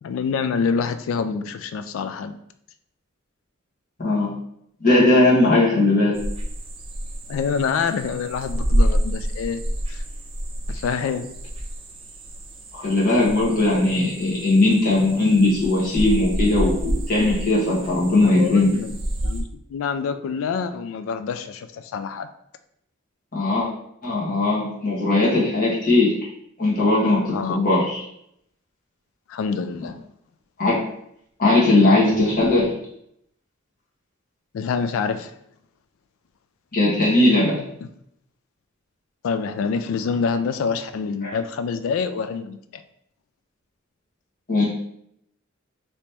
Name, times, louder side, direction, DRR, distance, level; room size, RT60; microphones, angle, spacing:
voice 1, 0.0-2.4 5.8-6.1 7.3-9.6 9.9-10.0 10.7-11.3 18.2-22.3 27.3-27.6 29.3-30.0 34.5-35.3 37.8-37.9 39.2-42.8, left 5 dB, 75° left, 11 dB, 0.3 m, -26 dB
voice 2, 4.0-4.4 4.8-6.2 12.7-18.7 23.3-23.7 24.0-26.1 26.6-28.0 30.6-30.8 31.4-32.7 36.7-37.6 41.2-41.3 44.5-44.7, left 2 dB, 45° left, -6 dB, 1.3 m, -19 dB
sound 1, 6.1-19.4, equal, 25° right, 0.5 m, -28 dB
3.0 x 2.8 x 3.3 m, 0.73 s
head